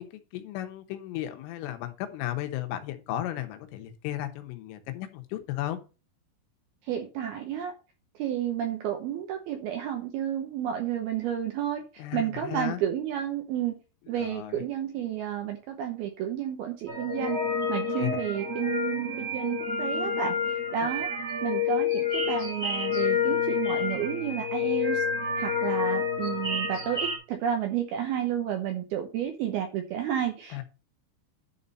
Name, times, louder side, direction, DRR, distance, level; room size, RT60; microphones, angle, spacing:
voice 1, 0.0-5.8 12.0-12.8 14.1-14.6 18.0-18.2 20.8-20.9 30.5-30.6, left 13 dB, 90° left, 8 dB, 3.6 m, -35 dB
voice 2, 6.8-7.7 8.2-13.8 14.1-17.4 17.7-25.0 25.4-30.6, right 9 dB, 80° right, 4 dB, 2.3 m, -31 dB
sound 1, 16.9-27.2, left 5 dB, 35° right, 1.2 m, -29 dB
10.5 x 4.2 x 5.4 m, 0.33 s
omnidirectional pair, 5.6 m